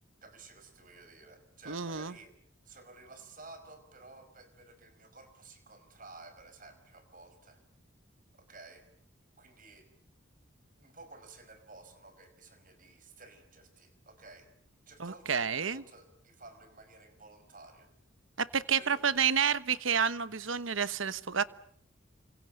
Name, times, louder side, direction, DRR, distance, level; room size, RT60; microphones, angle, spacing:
voice 1, 0.2-2.4 2.6-7.6 8.3-8.9 9.4-9.9 10.8-14.5 14.9-17.9 18.7-19.1, right 3 dB, 40° right, 9 dB, 5.3 m, -53 dB
voice 2, 1.7-2.1 15.0-15.8 18.4-21.4, right 7 dB, 75° right, 15 dB, 1.1 m, -30 dB
29.5 x 26.5 x 6.6 m, 0.67 s
head